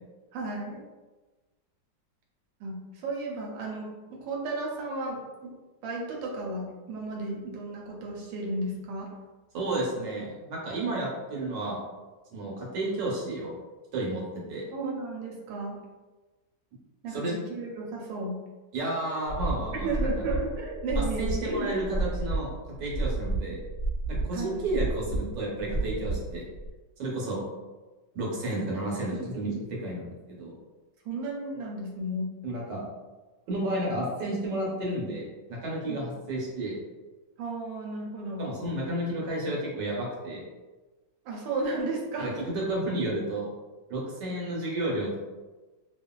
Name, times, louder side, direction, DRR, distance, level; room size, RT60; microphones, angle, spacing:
voice 1, 0.3-0.8 2.6-3.9 4.2-5.5 5.8-9.1 14.7-15.8 17.0-18.4 19.8-21.7 24.3-24.6 31.0-32.3 35.9-36.0 37.4-38.5 41.2-42.5, right 2 dB, 90° right, -2 dB, 1.4 m, -33 dB
voice 2, 9.5-11.8 12.3-13.5 13.9-14.2 14.5-14.7 17.1-17.3 18.7-20.1 21.0-22.5 22.8-23.6 24.1-26.5 27.0-27.4 28.1-30.5 32.4-32.8 33.5-36.8 38.4-40.4 42.2-43.5 43.9-45.1, right 1 dB, 75° right, -4 dB, 1.4 m, -31 dB
sound 1, 19.3-26.7, right 2 dB, 40° left, 1.1 m, -31 dB
2.9 x 2.4 x 2.2 m, 1.2 s
omnidirectional pair, 2.0 m